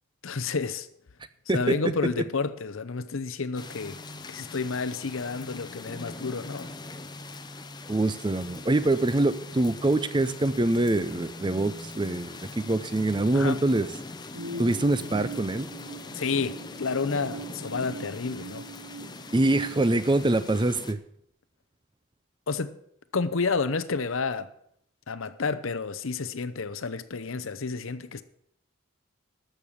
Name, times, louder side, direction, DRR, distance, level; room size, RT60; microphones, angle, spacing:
voice 1, 0.2-0.9 1.5-4.0 4.3-6.7 13.3-13.6 16.1-18.7 22.5-22.8 23.1-24.5 25.1-28.2, left 4 dB, 75° left, 0.7 m, -30 dB
sound 1, 3.5-20.9, left 2 dB, 20° left, 0.6 m, -42 dB
voice 2, 7.9-13.9 14.6-15.7 19.3-21.0, right 2 dB, 20° right, 0.5 m, -24 dB
sound 2, 14.3-19.9, right 3 dB, 85° right, 1.0 m, -41 dB
13.0 x 6.8 x 7.2 m
head